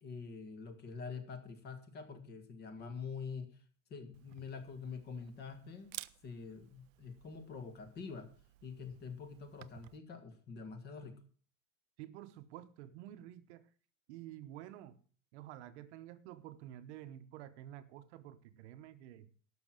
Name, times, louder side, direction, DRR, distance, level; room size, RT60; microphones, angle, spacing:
voice 1, 0.0-3.6 3.9-6.0 6.2-8.3 8.6-11.2, left 5 dB, 25° left, 1.7 m, -46 dB
Camera, 4.1-10.0, right 18 dB, 80° right, 0.6 m, -54 dB
voice 2, 12.0-13.7 14.1-15.0 15.3-19.3, right 12 dB, 60° right, 1.1 m, -50 dB
12.0 x 6.2 x 7.5 m
supercardioid pair, 165°, 39 cm